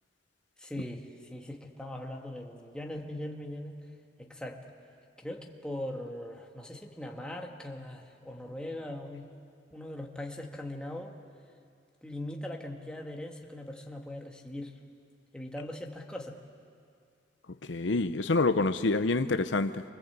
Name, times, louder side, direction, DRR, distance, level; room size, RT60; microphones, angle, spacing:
voice 1, 0.6-3.8 4.2-4.6 5.2-9.3 9.7-11.2 12.0-14.8 15.3-16.4, left 1 dB, 5° left, 0 dB, 1.9 m, -40 dB
voice 2, 17.6-19.8, left 3 dB, 75° left, 10 dB, 0.8 m, -27 dB
28.5 x 24.5 x 8.2 m, 2.3 s
head